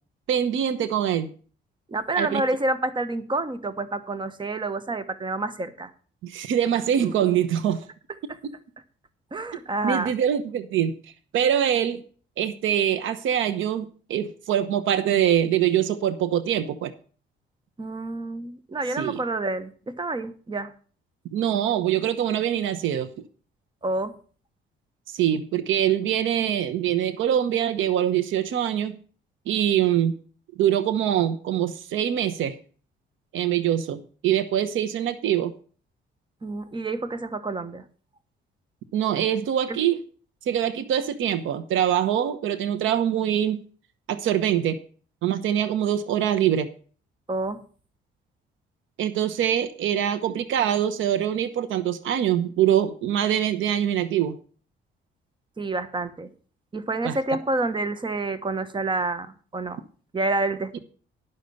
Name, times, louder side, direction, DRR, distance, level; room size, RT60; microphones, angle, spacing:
voice 1, 0.3-1.3 2.2-2.4 6.2-7.8 9.8-11.0 11.3-12.0 12.4-13.8 14.1-16.9 19.0-19.2 21.3-23.1 25.1-29.0 29.5-30.1 30.6-32.5 33.3-35.5 38.9-40.0 40.5-43.6 44.1-44.8 45.2-46.7 49.0-54.4 57.0-57.2 60.7-60.8, right 10 dB, 80° right, 1.0 m, -24 dB
voice 2, 1.9-5.9 7.0-7.3 9.3-10.1 17.8-20.7 23.8-24.1 36.4-37.8 39.7-39.8 47.3-47.6 55.6-56.3 56.7-59.8 60.1-60.8, right 2 dB, 25° right, 1.2 m, -28 dB
11.0 x 6.6 x 6.9 m
cardioid pair, 90°, 20 cm